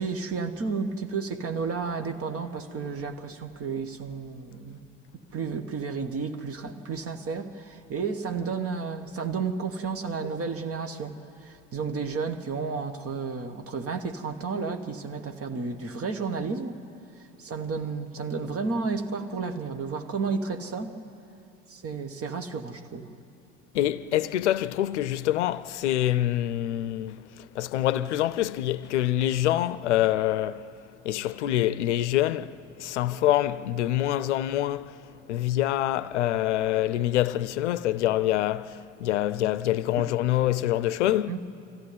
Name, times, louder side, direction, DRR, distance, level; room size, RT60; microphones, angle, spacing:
voice 1, 0.0-4.8 5.3-16.8 17.4-21.0 21.7-23.1 40.0-40.1 41.0-41.4, right 5 dB, 40° right, 1.6 m, -32 dB
voice 2, 23.7-27.2 27.5-30.6 31.0-34.9 35.3-41.3, left 13 dB, 80° left, 0.6 m, -25 dB
24.0 x 15.0 x 9.6 m
hypercardioid pair, 60°, 34 cm